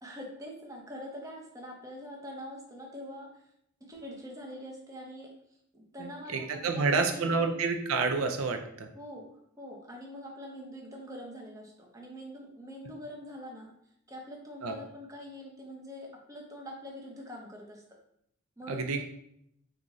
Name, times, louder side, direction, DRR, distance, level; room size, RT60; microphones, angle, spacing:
voice 1, 0.0-3.3 3.8-5.3 5.7-7.6 8.9-9.3 9.6-13.7 14.1-17.8 18.6-19.0, equal, 15° right, -1 dB, 0.6 m, -44 dB
voice 2, 6.0-8.9 14.6-14.8 18.7-19.0, right 4 dB, 80° right, 6 dB, 0.5 m, -29 dB
3.9 x 2.4 x 3.0 m, 0.72 s
head